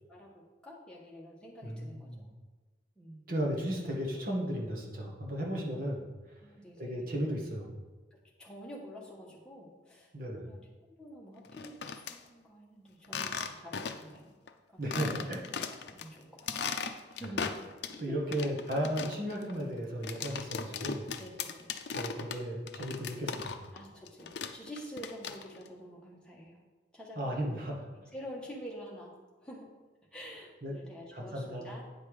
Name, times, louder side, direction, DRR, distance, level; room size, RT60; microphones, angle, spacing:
voice 1, 0.1-2.3 3.0-3.2 6.4-7.3 8.1-10.1 10.4-14.3 14.7-15.1 15.8-16.7 17.1-17.5 17.9-18.3 19.0-19.2 21.2-21.7 23.7-26.6 26.9-27.6 28.0-29.7 30.1-31.8, equal, 5° left, -4 dB, 1.5 m, -48 dB
voice 2, 1.6-2.3 3.3-6.1 6.8-7.8 10.1-10.5 14.8-15.4 17.2-17.3 18.0-21.0 21.9-23.6 27.1-27.9 30.6-30.7 31.1-31.7, equal, 50° right, -2 dB, 1.7 m, -35 dB
sound 1, 11.5-12.2 13.0-14.2 14.5-14.6 14.9-16.1 16.4-18.0 18.3-23.8 24.1-25.7, left 6 dB, 65° left, 0.6 m, -38 dB
9.1 x 5.7 x 5.0 m, 1.3 s
head